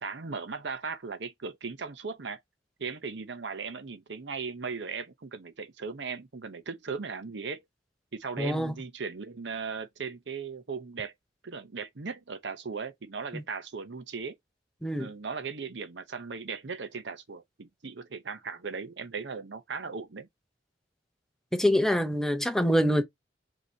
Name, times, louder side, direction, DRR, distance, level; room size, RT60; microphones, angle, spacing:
voice 1, 0.0-2.4 2.8-7.6 8.1-11.1 11.4-14.4 15.0-20.3, right 5 dB, 65° right, 0.7 m, -37 dB
voice 2, 8.4-8.7 13.3-13.4 14.8-15.1 21.5-23.0, equal, 5° left, 0.7 m, -25 dB
5.2 x 2.9 x 2.7 m
head